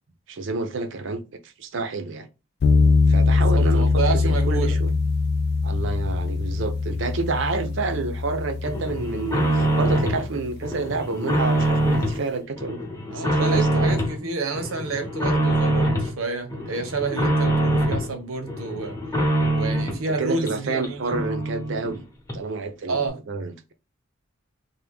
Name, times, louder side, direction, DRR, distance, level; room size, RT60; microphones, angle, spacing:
voice 1, 0.3-2.3 3.1-4.9 5.6-12.8 13.1-13.7 19.9-22.0 22.3-23.7, right 3 dB, 60° right, 0.5 m, -29 dB
sound 1, 2.6-10.8, left 4 dB, 50° left, 0.3 m, -22 dB
voice 2, 3.3-4.8 7.7-7.8 13.1-19.0 19.5-21.2 22.9-23.1, right 3 dB, 85° right, 0.8 m, -29 dB
sound 2, 8.6-10.2 10.6-12.2 12.6-14.2 14.5-16.1 16.5-18.1 18.5-20.0 20.5-20.6 20.8-20.9 21.1-22.0 22.3-22.4, right 1 dB, 15° left, 0.8 m, -24 dB
3.3 x 2.2 x 3.4 m
head